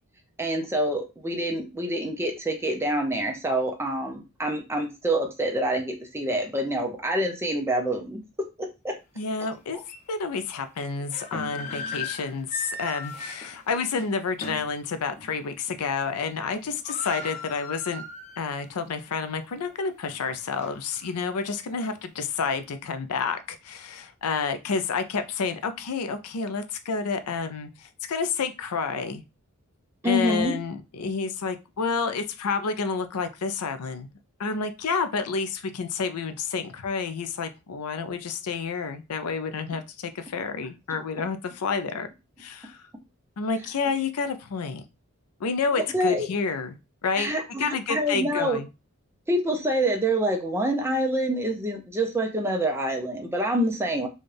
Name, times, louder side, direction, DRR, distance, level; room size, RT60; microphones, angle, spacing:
voice 1, 0.4-8.2 8.8-8.9 9.7-9.8 30.0-30.5 45.9-46.3 47.2-48.6 49.3-54.1, right 1 dB, 10° right, 0.6 m, -26 dB
voice 2, 9.2-9.8 10.1-18.0 18.4-29.2 30.0-34.1 34.4-42.1 42.4-42.8 43.4-44.8 45.4-47.3 47.6-48.7, left 5 dB, 90° left, 0.5 m, -29 dB
sound 1, 9.2-9.3 9.9-10.0 10.9-14.7 15.2-15.3 15.7-16.1 16.3-16.4 16.6-18.6 19.0-19.1 19.7-21.0, left 3 dB, 30° left, 0.7 m, -38 dB
4.2 x 2.3 x 3.3 m
head